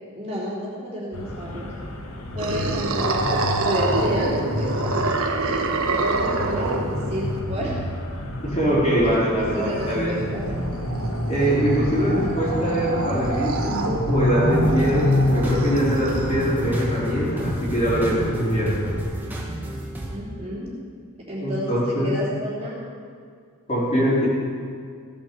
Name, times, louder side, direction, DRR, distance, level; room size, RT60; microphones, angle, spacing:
voice 1, 0.1-1.7 2.3-5.0 6.1-7.8 9.0-10.5 20.1-20.7 21.3-22.8, equal, 30° right, -6 dB, 3.2 m, -31 dB
sound 1, 1.1-19.0, left 1 dB, 80° left, 1.7 m, -28 dB
sound 2, 2.4-7.4 9.5-16.7, right 2 dB, 70° right, 1.3 m, -27 dB
voice 2, 8.4-10.1 11.3-18.7 21.4-22.1 23.7-24.3, equal, 30° left, -7 dB, 4.1 m, -23 dB
sound 3, 14.5-20.2, right 1 dB, 10° right, 1.8 m, -33 dB
16.0 x 8.4 x 6.9 m, 2.1 s
head